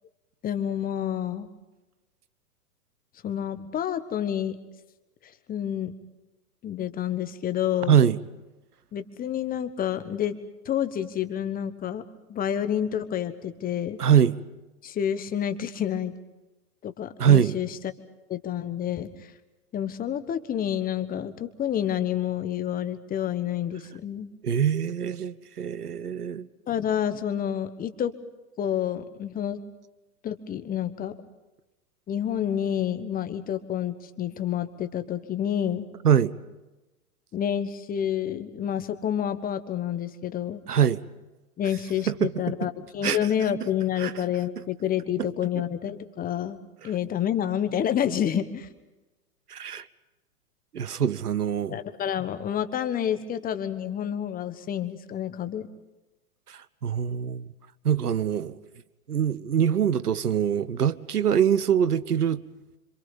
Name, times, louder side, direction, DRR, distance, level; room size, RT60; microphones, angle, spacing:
voice 1, 0.4-1.5 3.2-4.5 5.2-5.9 6.6-8.0 8.9-10.4 10.6-12.0 12.3-14.0 14.8-16.1 16.8-17.8 18.3-19.3 19.7-24.3 26.7-28.1 28.6-29.6 30.2-31.1 32.1-35.9 37.3-40.6 41.6-46.6 46.8-48.7 51.7-55.7, left 10 dB, 20° left, 1.3 m, -29 dB
voice 2, 7.9-8.2 14.0-14.4 17.2-17.6 24.4-26.5 36.0-36.3 40.7-41.0 42.1-42.3 43.0-43.2 44.0-44.1 49.5-49.8 50.7-51.8 56.5-57.5 57.8-58.6 59.1-62.4, right 9 dB, 85° right, 1.1 m, -23 dB
26.5 x 26.0 x 5.4 m
hypercardioid pair, 115°, 45 cm